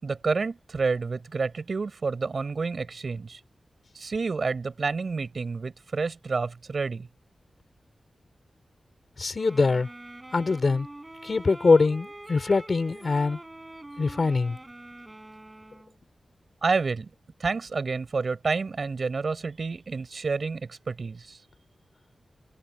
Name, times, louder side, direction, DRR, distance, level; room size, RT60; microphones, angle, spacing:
voice 1, 0.0-3.4 3.9-7.1 16.6-17.1 17.4-21.4, right 4 dB, 55° right, 6.3 m, -29 dB
voice 2, 9.2-9.9 10.3-10.9 11.2-13.4 14.0-14.6, left 4 dB, 50° left, 3.8 m, -23 dB
sound 1, 9.4-15.9, right 1 dB, 20° right, 6.8 m, -44 dB
wide cardioid pair, 100°, 0 cm